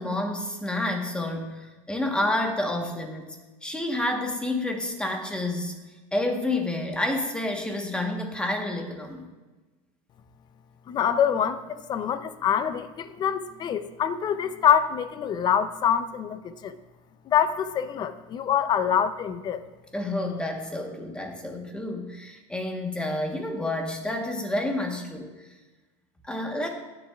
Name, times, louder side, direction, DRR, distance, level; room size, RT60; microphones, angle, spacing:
voice 1, 0.0-5.7 6.1-9.3 19.9-25.3 26.2-26.7, left 1 dB, 5° left, 2 dB, 1.1 m, -29 dB
voice 2, 10.9-16.8 17.3-19.6, left 8 dB, 30° left, 12 dB, 0.5 m, -25 dB
17.5 x 7.3 x 2.4 m, 1.2 s
cardioid pair, 150°, 15 cm